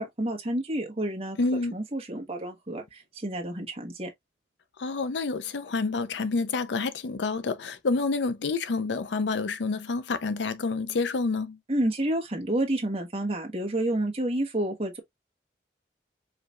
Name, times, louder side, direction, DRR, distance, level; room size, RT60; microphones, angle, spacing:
voice 1, 0.0-1.4 1.7-4.1 11.7-15.0, right 1 dB, 30° right, 1.2 m, -29 dB
voice 2, 1.4-1.7 4.8-11.6, left 3 dB, 85° left, 0.5 m, -28 dB
4.9 x 3.2 x 2.4 m
head